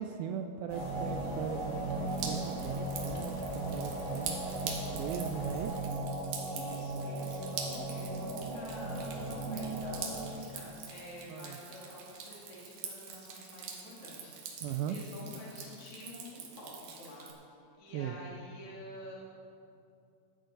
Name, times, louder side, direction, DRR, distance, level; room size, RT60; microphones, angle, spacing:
voice 1, 0.0-5.7 11.3-11.6 14.6-15.0 17.9-18.2, right 8 dB, 85° right, 6 dB, 2.1 m, -39 dB
sound 1, 0.7-5.8, left 2 dB, 65° left, 3.3 m, -47 dB
sound 2, 0.7-10.3, right 2 dB, 20° right, 2.5 m, -37 dB
Drip, 2.1-17.3, right 6 dB, 65° right, 2.6 m, -45 dB
voice 2, 6.5-17.3 17.8-19.2, left 1 dB, 45° left, -5 dB, 2.3 m, -49 dB
14.5 x 10.5 x 3.9 m, 2.5 s
omnidirectional pair, 4.7 m